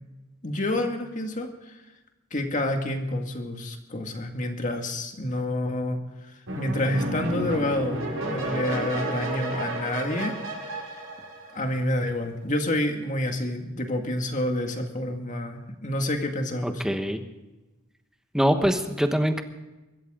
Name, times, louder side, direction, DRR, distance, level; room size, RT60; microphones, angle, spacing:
voice 1, 0.4-1.8 2.3-6.0 6.5-10.9 11.5-16.8, left 1 dB, 40° left, 4 dB, 2.1 m, -28 dB
sound 1, 6.5-11.9, right 1 dB, 80° right, 6.3 m, -31 dB
voice 2, 16.6-17.2 18.3-19.4, equal, 5° right, 6 dB, 1.2 m, -23 dB
24.0 x 13.5 x 3.8 m, 1.1 s
head